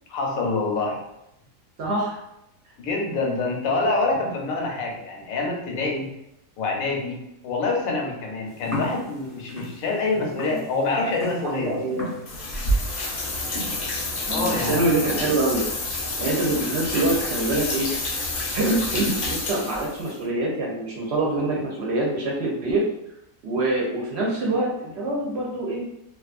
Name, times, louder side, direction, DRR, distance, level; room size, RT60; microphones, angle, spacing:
voice 1, 0.1-1.0 2.8-6.1 6.6-11.8 14.3-14.9, left 3 dB, 90° left, 0 dB, 1.1 m, -26 dB
voice 2, 1.8-2.2 10.4-10.6 11.4-12.1 14.2-15.6 16.2-17.9 18.2-18.3 18.5-22.8 23.4-25.9, right 2 dB, 65° right, -3 dB, 0.8 m, -25 dB
sound 1, 8.5-19.1, equal, 10° right, 0.7 m, -40 dB
sound 2, 12.3-20.1, left 1 dB, 60° left, 0.4 m, -28 dB
2.5 x 2.4 x 2.4 m, 0.84 s
omnidirectional pair, 1.4 m